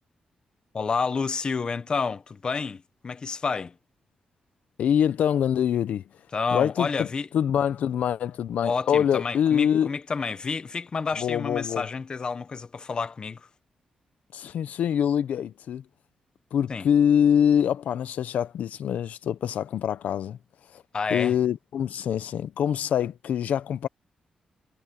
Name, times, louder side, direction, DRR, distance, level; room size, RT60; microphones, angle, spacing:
voice 1, 0.7-3.7 6.3-7.3 8.6-13.5 16.7-16.9 20.9-21.3, left 5 dB, 35° left, 1.0 m, -29 dB
voice 2, 4.8-6.0 6.5-7.1 7.3-9.9 11.2-11.9 14.3-15.8 16.5-20.4 20.7-20.8 21.1-23.9, left 9 dB, 85° left, 0.7 m, -24 dB
wide cardioid pair, 140°, 2 cm